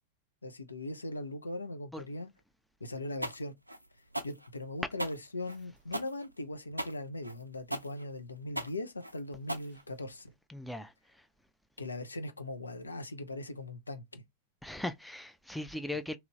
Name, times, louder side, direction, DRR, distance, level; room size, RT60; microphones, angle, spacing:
voice 1, 0.4-2.3 2.8-3.5 4.2-10.3 11.8-14.2, left 2 dB, 80° left, 0.5 m, -40 dB
sound 1, 3.2-10.3, right 1 dB, 85° right, 0.3 m, -39 dB
voice 2, 10.5-11.3 14.6-16.2, left 1 dB, ahead, 0.3 m, -39 dB
2.9 x 2.5 x 3.0 m
figure-of-eight pair, 90°, 0 cm